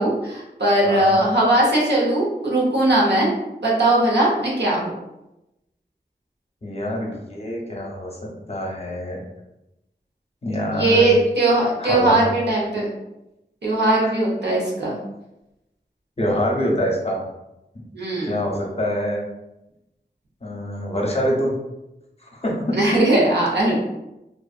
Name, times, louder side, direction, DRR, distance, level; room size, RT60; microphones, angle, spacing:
voice 1, 0.0-3.3 3.6-4.9 10.7-12.9 13.6-14.9 17.9-18.3 22.7-23.9, right 1 dB, 90° right, -5 dB, 0.8 m, -19 dB
voice 2, 0.8-1.2 6.6-9.2 10.4-11.1 11.8-12.3 14.0-14.1 16.2-17.2 17.7-17.8 18.2-19.3 20.4-21.5 22.2-22.8, equal, 40° left, -1 dB, 0.6 m, -25 dB
2.5 x 2.4 x 2.4 m, 0.92 s
wide cardioid pair, 45°, 17 cm